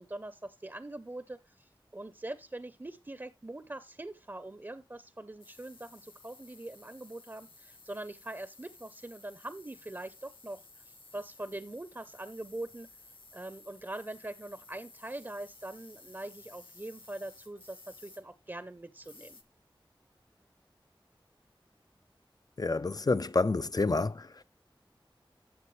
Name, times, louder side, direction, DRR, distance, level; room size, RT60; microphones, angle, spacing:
voice 1, 0.0-12.9 13.3-19.4, right 1 dB, 25° right, 0.7 m, -43 dB
sound 1, 5.4-19.4, left 3 dB, 65° left, 1.3 m, -56 dB
voice 2, 22.6-24.4, left 3 dB, 45° left, 0.5 m, -29 dB
12.0 x 7.2 x 3.2 m
wide cardioid pair, 60°, 9 cm